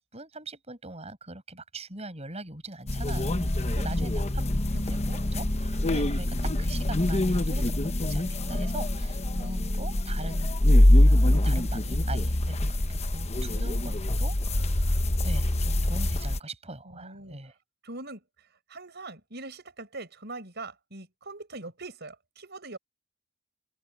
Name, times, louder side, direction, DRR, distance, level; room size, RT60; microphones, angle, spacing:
voice 1, 0.0-10.6 10.9-11.2 11.4-17.5, right 2 dB, 30° right, 7.4 m, -42 dB
sound 1, 2.9-16.4, left 1 dB, 30° left, 1.0 m, -24 dB
voice 2, 3.6-4.1 16.8-17.4 17.8-22.8, right 2 dB, 50° right, 7.0 m, -42 dB
open air
head